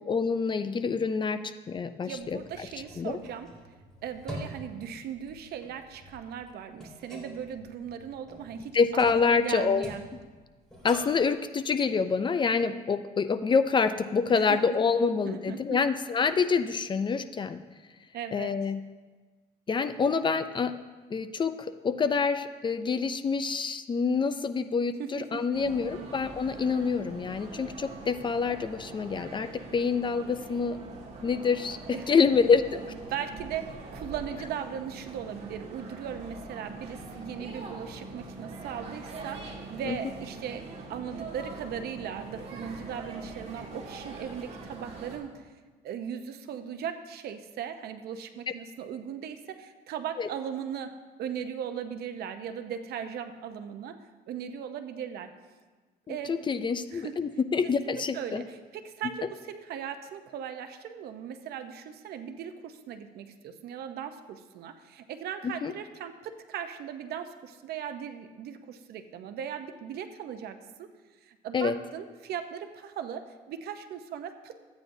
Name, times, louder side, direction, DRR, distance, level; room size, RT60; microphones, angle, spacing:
voice 1, 0.0-2.4 3.0-3.2 8.7-9.9 10.8-17.6 18.3-18.8 19.7-20.7 21.1-30.8 31.2-32.8 39.9-40.0 50.2-50.3 56.1-58.4 65.4-65.7 71.5-71.8, left 5 dB, 30° left, 11 dB, 0.4 m, -27 dB
voice 2, 2.0-3.5 4.0-10.1 14.3-14.8 15.2-15.8 18.1-18.5 25.0-26.1 31.9-32.2 33.1-45.5 45.8-54.0 54.3-55.3 56.1-56.4 56.9-57.2 57.8-70.9 71.2-74.6, right 8 dB, 70° right, 8 dB, 0.8 m, -38 dB
sound 1, 2.2-11.3, equal, 5° left, 3.2 m, -47 dB
sound 2, 25.5-45.2, right 3 dB, 40° right, 1.8 m, -43 dB
14.5 x 9.1 x 2.7 m, 1.3 s
cardioid pair, 110°, 17 cm